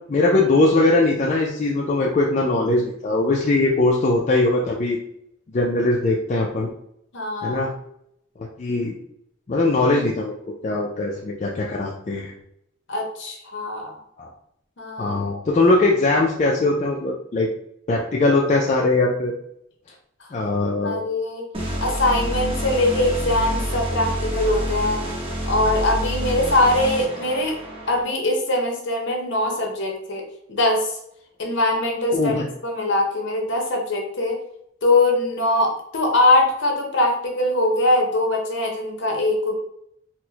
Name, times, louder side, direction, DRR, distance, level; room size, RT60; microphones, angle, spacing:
voice 1, 0.1-5.0 5.5-6.7 7.4-7.7 8.6-8.9 9.5-10.3 10.6-12.3 14.2-14.3 15.0-17.5 17.9-19.3 20.3-21.0 32.1-32.5, left 2 dB, 35° left, -2 dB, 0.3 m, -20 dB
voice 2, 7.1-7.6 12.9-14.0 14.8-15.2 20.8-21.4 21.8-25.1 25.5-27.6 27.9-30.2 30.5-30.9 31.4-32.3 32.6-34.4 34.8-39.5, left 2 dB, 60° left, 1 dB, 0.8 m, -22 dB
sound 1, 21.5-28.0, equal, 25° right, 0.6 m, -27 dB
4.2 x 2.1 x 2.8 m, 0.73 s
head